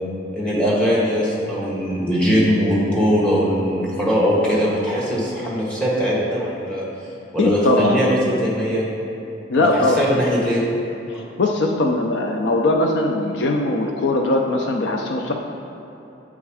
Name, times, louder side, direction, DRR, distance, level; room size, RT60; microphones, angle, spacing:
voice 1, 0.3-8.8 9.6-10.6, equal, 5° left, -7 dB, 1.4 m, -21 dB
voice 2, 7.4-8.3 9.5-10.0 11.1-15.3, left 2 dB, 65° left, 2 dB, 0.4 m, -20 dB
7.7 x 3.6 x 4.7 m, 2.9 s
head